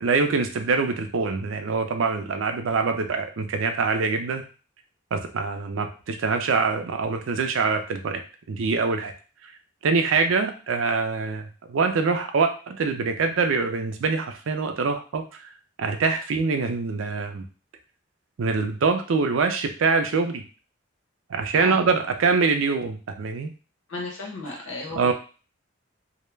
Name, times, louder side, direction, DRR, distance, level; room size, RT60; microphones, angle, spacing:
voice 1, 0.0-4.4 5.1-8.2 8.5-9.1 9.8-15.5 15.8-17.4 18.4-20.4 21.3-23.5 24.9-25.1, right 4 dB, 85° right, 6 dB, 0.4 m, -24 dB
voice 2, 23.9-25.1, left 2 dB, 85° left, -1 dB, 0.8 m, -34 dB
2.2 x 2.0 x 3.2 m, 0.35 s
head